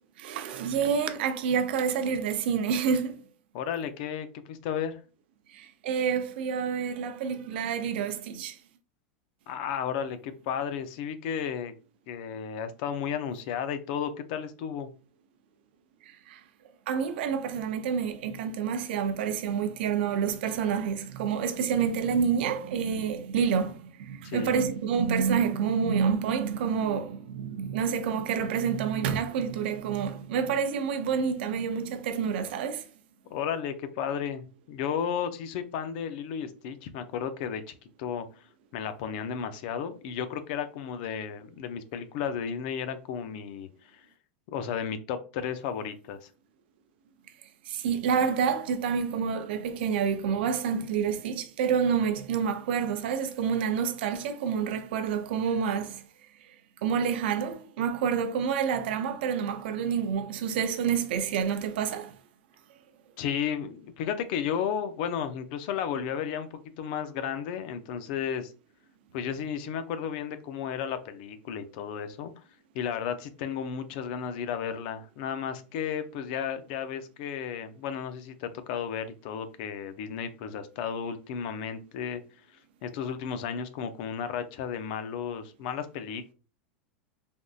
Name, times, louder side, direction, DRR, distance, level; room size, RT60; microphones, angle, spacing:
voice 1, 0.2-3.2 5.5-8.6 16.1-16.4 16.9-32.9 47.7-56.0 56.5-56.6 56.8-62.2, right 7 dB, 75° right, 0.5 m, -28 dB
voice 2, 3.5-5.0 9.5-11.7 12.1-14.9 24.2-24.5 33.3-38.3 38.7-44.0 44.5-46.3 63.2-68.5 69.1-72.3 72.7-82.2 82.8-86.3, left 8 dB, 55° left, 0.5 m, -33 dB
3.4 x 2.6 x 2.3 m
supercardioid pair, 150°, 6 cm